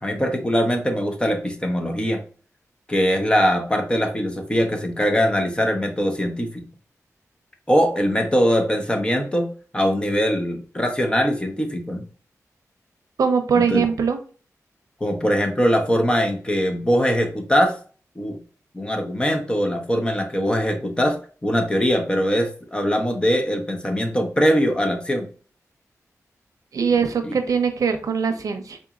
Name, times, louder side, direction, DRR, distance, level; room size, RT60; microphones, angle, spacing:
voice 1, 0.0-2.2 2.9-6.6 7.7-12.0 13.5-13.8 15.0-17.7 18.2-18.4 18.7-25.3 27.2-27.3, equal, 15° left, 4 dB, 0.7 m, -22 dB
voice 2, 13.2-14.2 26.7-28.8, right 6 dB, 80° right, 7 dB, 0.6 m, -21 dB
3.9 x 2.9 x 2.4 m, 0.41 s
wide cardioid pair, 120°, 6 cm